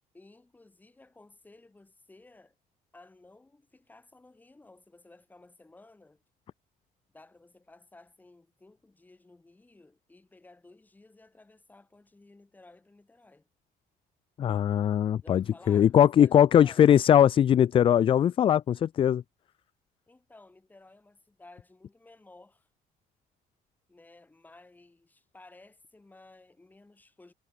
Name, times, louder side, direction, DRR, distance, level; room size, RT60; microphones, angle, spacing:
voice 1, 0.1-2.6 2.9-6.2 7.1-13.5 15.2-16.9 20.1-22.7 23.9-27.3, left 2 dB, 10° left, 5.9 m, -56 dB
voice 2, 14.4-19.2, left 9 dB, 35° left, 0.5 m, -21 dB
cardioid pair, 160°, 16 cm